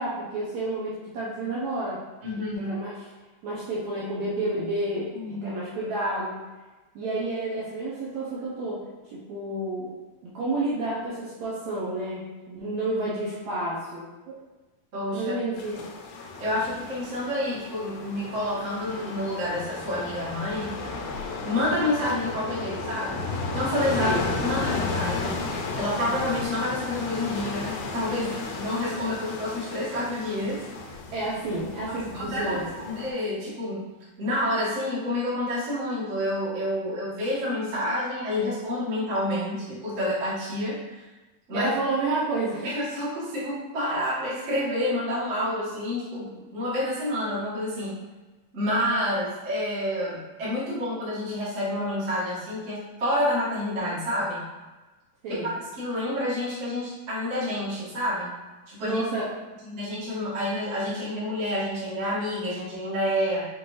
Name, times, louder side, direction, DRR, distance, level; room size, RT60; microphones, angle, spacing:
voice 1, 0.0-2.0 2.3-2.9 3.4-6.4 6.9-8.8 9.1-9.9 10.2-14.4 15.1-15.7 24.0-24.2 31.1-32.7 41.5-42.7 55.2-55.5 58.8-59.3, right 2 dB, 75° right, -7 dB, 1.7 m, -30 dB
voice 2, 2.2-2.8 5.1-5.6 14.9-15.3 16.4-20.7 21.4-23.2 23.5-25.4 25.7-30.6 31.9-33.8 34.2-41.0 41.5-41.7 42.6-48.0 48.5-54.4 55.3-55.4 55.8-58.3 58.7-59.0 59.6-63.5, left 1 dB, 50° right, -10 dB, 0.8 m, -28 dB
sound 1, 15.6-33.1, left 3 dB, 90° left, 2.3 m, -34 dB
6.0 x 2.6 x 3.1 m, 1.2 s
omnidirectional pair, 3.9 m